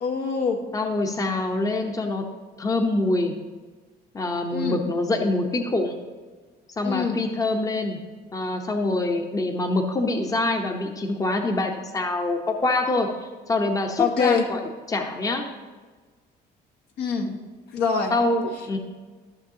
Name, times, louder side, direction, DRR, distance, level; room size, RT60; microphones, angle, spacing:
voice 1, 0.0-0.6 4.5-4.8 6.8-7.2 14.0-14.5 17.0-17.3 17.7-18.1, left 5 dB, 75° left, 2 dB, 1.3 m, -24 dB
voice 2, 0.7-2.3 2.6-3.3 4.1-6.0 6.8-8.0 8.3-13.1 13.5-15.4 18.1-18.8, left 2 dB, 20° left, 4 dB, 0.8 m, -25 dB
13.5 x 6.6 x 2.8 m, 1.4 s
cardioid pair, 110°, 17 cm